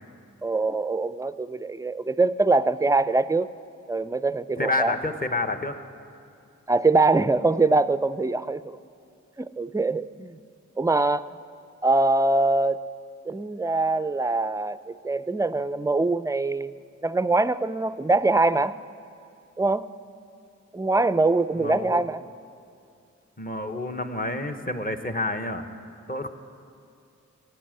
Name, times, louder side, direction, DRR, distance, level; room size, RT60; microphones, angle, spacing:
voice 1, 0.4-3.5 3.9-4.9 6.7-8.8 9.4-10.4 10.8-11.3 11.8-12.8 13.3-18.7 19.6-19.9 20.7-22.2, right 3 dB, 10° right, 15 dB, 0.4 m, -23 dB
voice 2, 4.6-5.7 21.5-22.0 23.4-25.6 26.1-26.3, left 2 dB, 30° left, 6 dB, 1.0 m, -29 dB
16.0 x 9.4 x 7.6 m, 2.6 s
cardioid pair, 45°, 31 cm